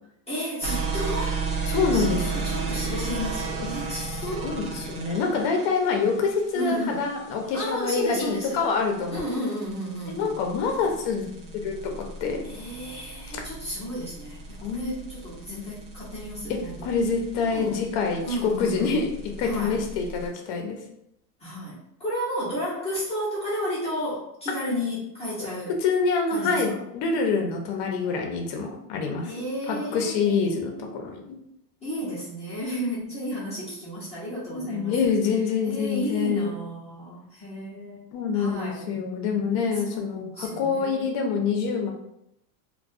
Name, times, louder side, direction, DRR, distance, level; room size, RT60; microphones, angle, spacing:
voice 1, 0.3-1.4 1.9-4.5 6.5-7.1 7.5-8.6 9.1-10.4 12.4-16.9 17.5-17.8 18.2-19.1 19.4-19.8 21.4-25.8 26.3-26.8 29.2-31.2 31.8-35.1 35.6-38.9 39.7-41.1, equal, 15° left, -9 dB, 0.6 m, -33 dB
sound 1, 0.6-20.3, right 4 dB, 60° right, 0.8 m, -34 dB
voice 2, 1.7-2.5 4.0-4.1 4.4-9.2 10.1-11.3 11.5-12.4 14.6-14.9 15.5-15.7 16.8-19.1 19.4-20.8 25.8-29.3 29.7-31.3 34.5-36.5 38.1-41.9, left 5 dB, 50° left, 2 dB, 0.7 m, -26 dB
2.2 x 2.2 x 2.5 m, 0.78 s
supercardioid pair, 140°, 49 cm